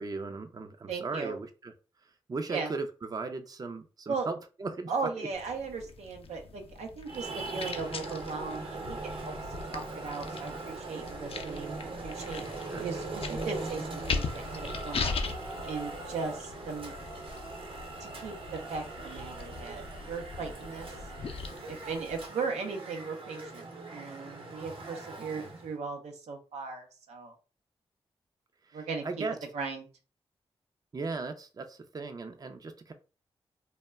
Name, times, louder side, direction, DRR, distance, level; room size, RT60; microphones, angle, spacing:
voice 1, 0.0-1.7 2.0-4.9 5.2-5.3 12.7-12.9 25.3-25.6 28.6-29.3 30.9-32.9, right 3 dB, 35° right, 7 dB, 0.4 m, -37 dB
voice 2, 0.9-1.4 2.5-2.7 4.1-4.3 4.9-9.3 9.7-12.4 12.8-15.1 15.7-16.9 18.0-20.9 21.7-23.7 23.9-27.3 28.7-29.2 29.5-29.9, right 4 dB, 85° right, 3 dB, 0.5 m, -37 dB
sound 1, 5.3-22.3, left 4 dB, 60° left, 0.4 m, -40 dB
Traffic noise roadway noise, 7.1-25.7, right 3 dB, 55° right, 0.8 m, -41 dB
2.1 x 2.1 x 3.4 m, 0.34 s
cardioid pair, 50°, 11 cm